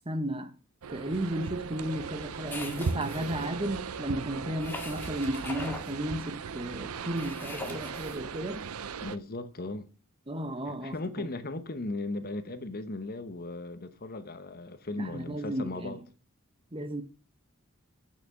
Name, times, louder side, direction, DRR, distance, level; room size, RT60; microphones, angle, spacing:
voice 1, 0.1-0.5 0.9-8.6 10.3-11.3 15.0-16.0 16.7-17.0, right 1 dB, 25° right, 1.0 m, -34 dB
sound 1, 0.8-9.2, right 5 dB, 85° right, 0.6 m, -38 dB
sound 2, 2.5-3.4 4.6-5.9 7.2-8.2, left 2 dB, 10° left, 1.8 m, -41 dB
voice 2, 9.0-9.9 10.7-16.0, left 2 dB, 45° left, 1.0 m, -37 dB
8.7 x 6.0 x 7.0 m
head